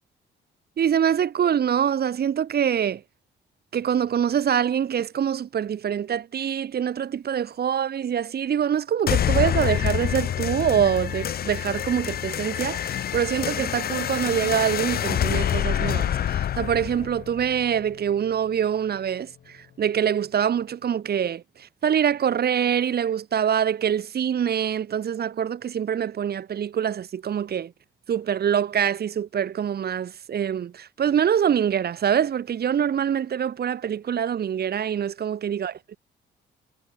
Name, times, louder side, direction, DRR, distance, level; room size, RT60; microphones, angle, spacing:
voice 1, 0.8-3.0 3.7-27.7 28.1-36.0, right 8 dB, 55° right, 1.6 m, -25 dB
sound 1, 9.1-18.1, left 10 dB, 50° left, 0.6 m, -27 dB
cardioid pair, 90°, 20 cm